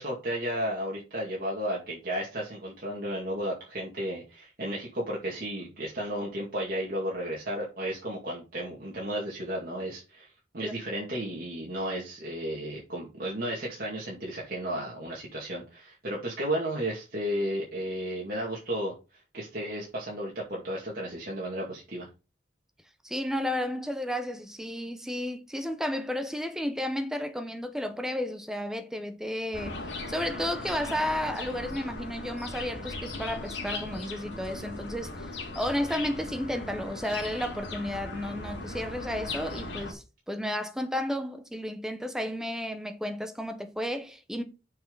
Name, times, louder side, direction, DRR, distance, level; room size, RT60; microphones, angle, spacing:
voice 1, 0.0-10.3 10.5-18.9 19.3-22.1, equal, 50° right, 2.2 m, -33 dB
voice 2, 23.0-29.8 30.1-44.4, left 1 dB, 5° right, 0.8 m, -32 dB
sound 1, 29.5-39.9, left 2 dB, 75° left, 2.2 m, -38 dB
6.9 x 5.5 x 3.9 m
head